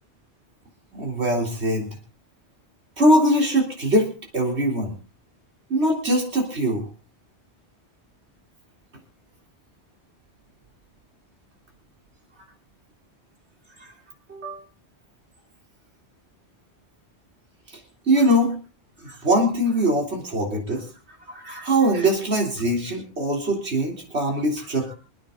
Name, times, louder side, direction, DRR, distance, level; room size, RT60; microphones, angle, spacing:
voice 1, 0.9-1.9 3.0-4.1 4.3-4.9 5.7-6.9 13.8-13.9 14.3-14.6 17.7-17.8 18.1-18.5 19.0-20.9 21.3-24.9, right 1 dB, 80° right, 1 dB, 3.9 m, -22 dB
26.5 x 9.4 x 3.9 m, 0.37 s
omnidirectional pair, 1.1 m